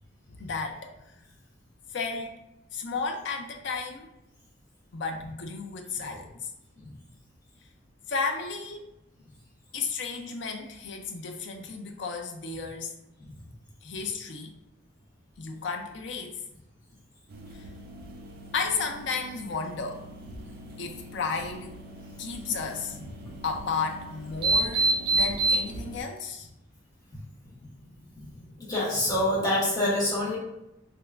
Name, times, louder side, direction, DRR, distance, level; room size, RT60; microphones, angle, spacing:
voice 1, 0.3-0.9 1.9-2.3 2.7-4.1 4.9-6.5 8.1-8.9 9.7-12.9 13.8-14.5 15.4-16.4 17.5-17.7 18.5-20.0 20.8-21.8 22.2-23.0 23.4-26.5, left 4 dB, 60° left, 3 dB, 0.5 m, -33 dB
sound 1, 17.3-26.0, right 2 dB, 55° right, 0.5 m, -31 dB
voice 2, 28.6-30.4, left 1 dB, 20° left, -8 dB, 1.2 m, -25 dB
3.4 x 2.9 x 2.4 m, 0.88 s
head